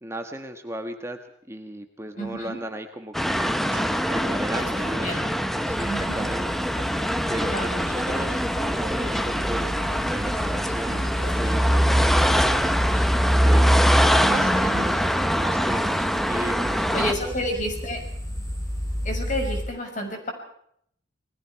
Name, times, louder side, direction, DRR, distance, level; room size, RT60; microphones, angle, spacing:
voice 1, 0.0-1.2 1.5-3.6 4.1-5.4 5.6-6.6 7.3-9.7 10.1-13.7 14.2-15.0 15.3-17.3, right 1 dB, 15° right, 5 dB, 1.4 m, -36 dB
voice 2, 2.2-2.6 4.6-5.4 5.8-6.3 7.5-7.8 11.4-11.7 14.2-14.9 16.9-18.0 19.0-20.3, equal, 40° left, 4 dB, 6.3 m, -31 dB
sound 1, 3.1-17.1, equal, ahead, 1.0 m, -23 dB
sound 2, 3.4-12.2, right 2 dB, 60° right, 2.9 m, -43 dB
sound 3, 5.7-19.6, equal, 20° left, 7.6 m, -34 dB
29.0 x 20.5 x 4.7 m, 0.68 s
head